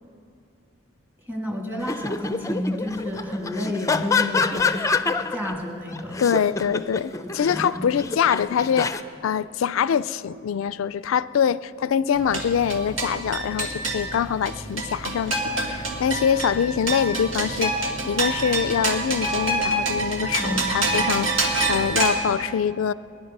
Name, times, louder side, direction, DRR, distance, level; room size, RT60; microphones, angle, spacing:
voice 1, 1.3-4.8 5.3-6.3 7.2-7.9 20.4-20.7, left 1 dB, 10° right, 1 dB, 1.7 m, -30 dB
sound 1, 1.8-5.5 5.9-9.0, left 4 dB, 15° left, 0.5 m, -26 dB
voice 2, 6.2-22.9, left 8 dB, 80° left, 17 dB, 0.3 m, -24 dB
sound 2, 12.1-22.1, right 2 dB, 80° right, 2.2 m, -26 dB
22.5 x 10.5 x 5.4 m, 2.4 s
head